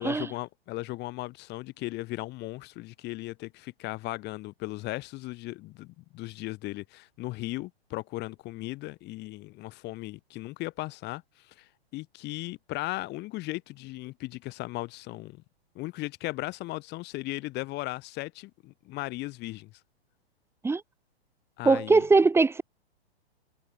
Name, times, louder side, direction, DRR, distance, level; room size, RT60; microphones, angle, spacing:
voice 1, 0.0-15.4 15.7-19.7 21.6-22.0, left 19 dB, 30° left, 6.8 m, -37 dB
voice 2, 21.6-22.6, right 3 dB, 10° right, 2.9 m, -21 dB
figure-of-eight pair, 115°, 32 cm